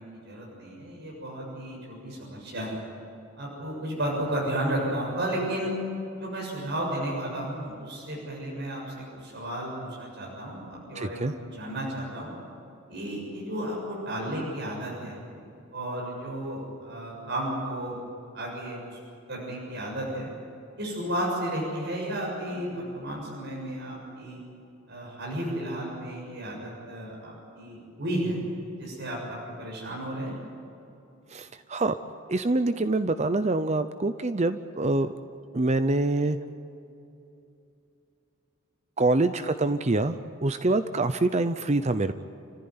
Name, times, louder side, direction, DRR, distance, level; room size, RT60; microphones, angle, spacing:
voice 1, 0.0-2.8 3.4-5.7 6.2-9.7 10.0-12.3 12.9-15.2 15.7-18.0 18.3-19.0 19.3-20.3 20.8-24.4 24.9-28.4 28.8-30.3, right 1 dB, 60° right, -3 dB, 7.0 m, -33 dB
voice 2, 11.0-11.3 31.3-31.9 32.3-35.1 35.5-36.4 39.0-40.2 40.4-42.1, right 2 dB, 35° right, 10 dB, 0.7 m, -25 dB
29.5 x 15.0 x 9.7 m, 2.8 s
head